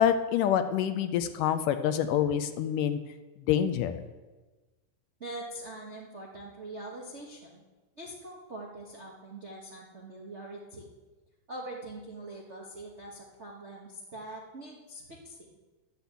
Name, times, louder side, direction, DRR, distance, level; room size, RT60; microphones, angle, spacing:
voice 1, 0.0-3.0 3.5-4.0, left 9 dB, 75° left, 9 dB, 2.1 m, -26 dB
voice 2, 5.2-7.6 8.0-10.9 11.5-15.5, right 1 dB, 85° right, -3 dB, 0.6 m, -43 dB
11.0 x 8.1 x 8.3 m, 1.2 s
omnidirectional pair, 4.0 m